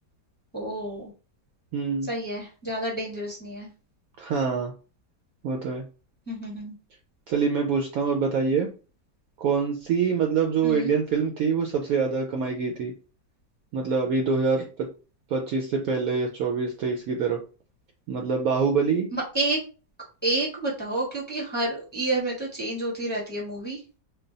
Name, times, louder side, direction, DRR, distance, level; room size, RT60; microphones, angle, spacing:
voice 1, 0.5-1.1 2.1-3.7 6.3-6.7 10.6-10.9 19.3-19.6 20.2-23.8, right 2 dB, 5° left, -4 dB, 1.0 m, -29 dB
voice 2, 1.7-2.1 4.2-4.7 5.4-5.9 7.3-8.7 9.4-12.9 13.7-14.9 15.3-17.4 18.1-19.1, right 5 dB, 70° right, 2 dB, 0.9 m, -25 dB
3.3 x 2.2 x 3.8 m, 0.35 s
omnidirectional pair, 1.8 m